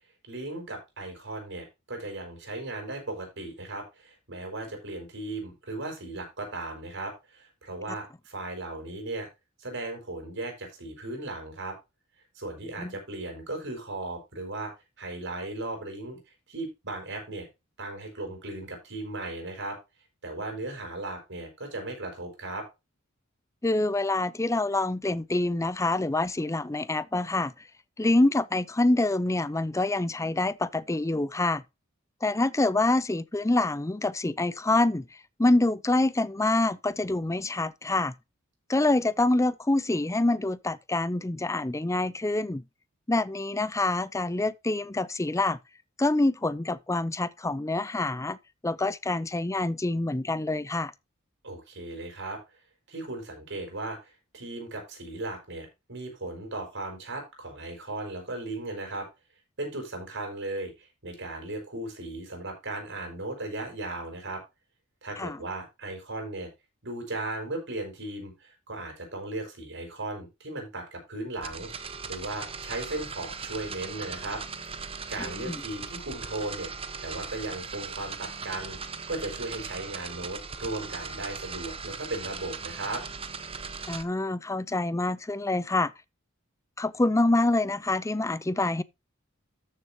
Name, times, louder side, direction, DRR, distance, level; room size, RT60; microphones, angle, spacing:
voice 1, 0.3-9.3 9.6-11.7 12.3-14.7 15.0-16.2 16.5-17.5 17.8-19.8 20.2-22.6 51.4-52.4 52.9-59.1 59.6-64.4 65.0-66.5 66.8-74.4 74.8-76.7 77.0-78.8 79.1-83.0, right 2 dB, 60° right, 5.1 m, -36 dB
voice 2, 23.6-27.5 28.0-31.6 32.2-35.1 35.4-38.1 38.7-42.6 43.1-45.6 46.0-48.4 48.6-50.9 65.2-65.4 75.2-75.6 83.9-85.9 86.8-88.8, left 2 dB, 15° left, 0.5 m, -26 dB
sound 1, 71.4-84.0, right 5 dB, 30° right, 0.9 m, -39 dB
13.5 x 6.7 x 2.8 m
head